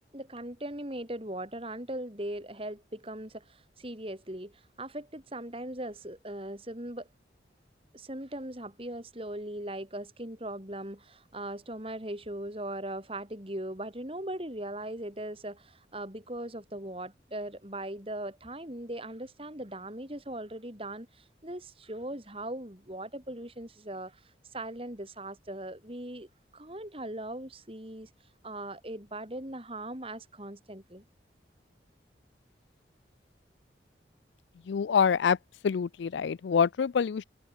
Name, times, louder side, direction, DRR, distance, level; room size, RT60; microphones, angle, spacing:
voice 1, 0.1-7.1 7.9-24.2 24.5-26.3 26.5-28.1 28.4-31.0, right 1 dB, 30° right, 3.8 m, -39 dB
voice 2, 34.7-35.4 35.6-37.2, left 6 dB, 75° left, 0.4 m, -26 dB
head